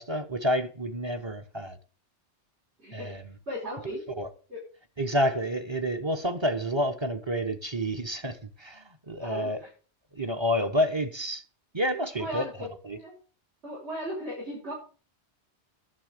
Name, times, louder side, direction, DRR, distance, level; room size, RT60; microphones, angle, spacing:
voice 1, 0.0-1.8 2.9-3.3 4.2-4.3 5.0-9.6 10.1-11.4 11.7-12.5 12.8-13.0, equal, 25° right, 1.2 m, -29 dB
voice 2, 3.5-4.0 4.5-4.6 9.2-9.7 12.2-12.7 13.0-13.1 13.6-14.7, equal, 70° right, 6.2 m, -36 dB
11.5 x 7.1 x 6.8 m
omnidirectional pair, 1.2 m